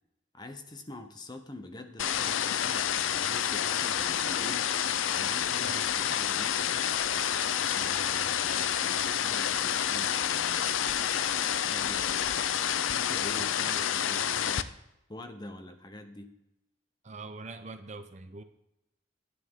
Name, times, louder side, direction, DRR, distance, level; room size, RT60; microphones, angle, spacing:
voice 1, 0.3-4.7 5.1-6.9 7.7-10.8 11.6-14.7 15.1-16.3, left 2 dB, 20° left, 7 dB, 0.7 m, -46 dB
sound 1, 2.0-14.6, left 9 dB, 80° left, 0.5 m, -29 dB
voice 2, 5.6-5.9 13.6-14.0 17.0-18.4, right 3 dB, 35° right, 9 dB, 0.6 m, -44 dB
11.5 x 9.6 x 3.6 m, 0.86 s
head